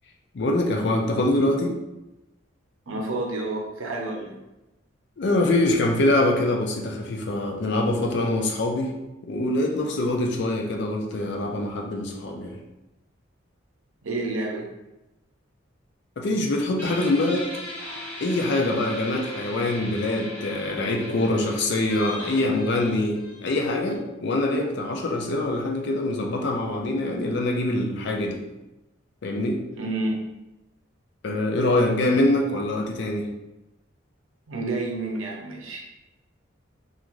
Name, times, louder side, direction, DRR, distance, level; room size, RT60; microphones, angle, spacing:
voice 1, 0.3-1.8 5.2-8.9 9.3-12.6 16.2-17.5 18.2-28.4 29.2-29.6 31.2-33.3, left 1 dB, 60° left, 2 dB, 0.4 m, -24 dB
voice 2, 2.9-4.4 14.0-14.7 29.8-30.2 34.5-35.8, right 2 dB, 90° right, 0 dB, 0.6 m, -29 dB
Guitar, 16.8-24.0, left 1 dB, 10° left, 1.0 m, -39 dB
3.0 x 2.4 x 2.5 m, 0.99 s
head